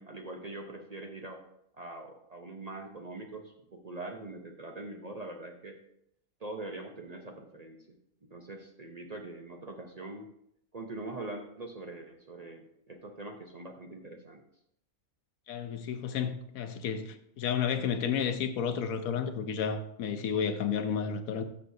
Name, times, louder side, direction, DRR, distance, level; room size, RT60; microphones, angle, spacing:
voice 1, 0.0-1.4 1.7-5.8 6.4-8.0 8.3-10.3 10.7-14.4, right 2 dB, 40° right, 0.6 m, -43 dB
voice 2, 15.5-21.4, left 7 dB, 75° left, 1.1 m, -32 dB
12.5 x 6.4 x 2.7 m
omnidirectional pair, 1.5 m